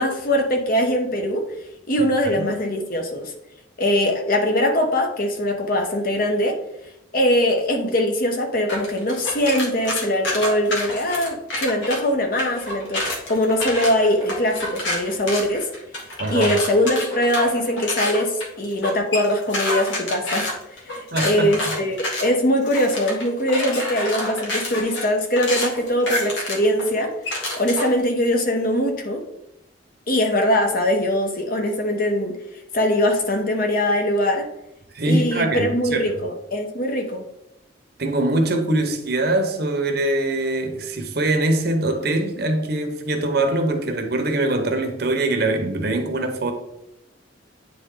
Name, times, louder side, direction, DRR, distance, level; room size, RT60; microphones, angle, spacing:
voice 1, 0.0-1.4 1.9-3.3 3.8-6.6 7.1-13.0 13.3-15.7 16.3-29.2 30.1-32.4 32.7-34.5 35.0-37.2, left 1 dB, 50° left, 1.0 m, -22 dB
sound 1, 8.7-12.0 12.4-28.0, left 1 dB, 90° left, 1.8 m, -28 dB
voice 2, 16.2-16.5 21.1-21.7 34.9-36.0 38.0-46.5, right 2 dB, 55° right, 1.0 m, -23 dB
9.2 x 3.7 x 3.8 m
head